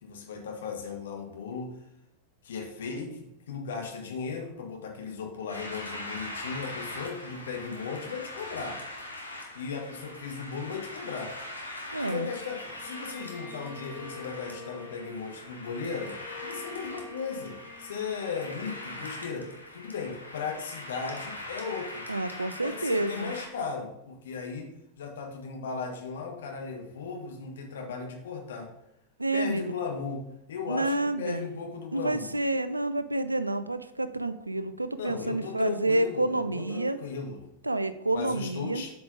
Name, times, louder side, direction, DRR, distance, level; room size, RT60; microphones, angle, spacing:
voice 1, 0.0-1.7 2.4-8.8 9.5-11.3 12.0-22.1 22.6-24.7 25.0-28.7 29.3-32.3 35.0-37.5 38.1-38.9, left 5 dB, 60° left, 2 dB, 1.3 m, -36 dB
sound 1, 5.5-23.5, left 1 dB, 85° left, 1.1 m, -42 dB
voice 2, 11.9-12.3 22.1-23.3 29.2-29.7 30.7-31.5 31.9-37.0 37.6-38.8, right 2 dB, 85° right, 13 dB, 0.4 m, -29 dB
Bowed string instrument, 12.7-19.9, left 3 dB, 40° left, 2.9 m, -47 dB
7.9 x 4.8 x 3.8 m, 0.86 s
figure-of-eight pair, 90°, 0 cm